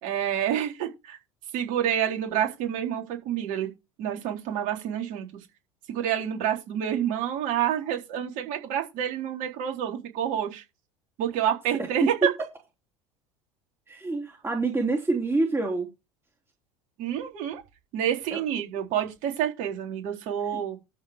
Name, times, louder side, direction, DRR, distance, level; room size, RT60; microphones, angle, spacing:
voice 1, 0.0-1.2 1.5-3.7 4.0-5.3 5.9-10.6 11.2-12.1 17.0-17.6 17.9-20.8, right 10 dB, 55° right, 4.0 m, -28 dB
voice 2, 13.9-15.9 18.3-18.4 20.5-20.6, right 3 dB, 15° right, 3.2 m, -26 dB
13.5 x 5.1 x 5.2 m
hypercardioid pair, 75°, 17 cm